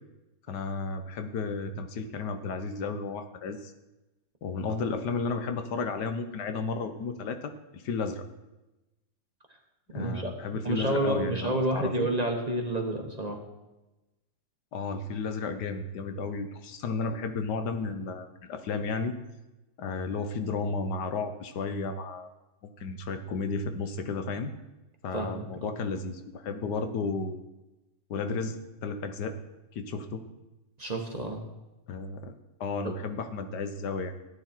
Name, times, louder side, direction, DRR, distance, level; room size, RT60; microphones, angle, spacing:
voice 1, 0.5-3.7 4.4-8.2 9.9-12.1 14.7-19.1 19.8-22.3 22.8-24.5 25.0-27.4 28.1-28.6 28.8-29.3 29.7-30.2 31.9-32.3 32.6-34.1, left 4 dB, 85° left, 8 dB, 1.6 m, -33 dB
voice 2, 9.9-10.3 10.6-13.4 25.1-25.7 30.8-31.4 32.8-32.9, right 1 dB, 25° right, 2 dB, 1.3 m, -29 dB
14.0 x 9.5 x 4.4 m, 1.0 s
omnidirectional pair, 1.8 m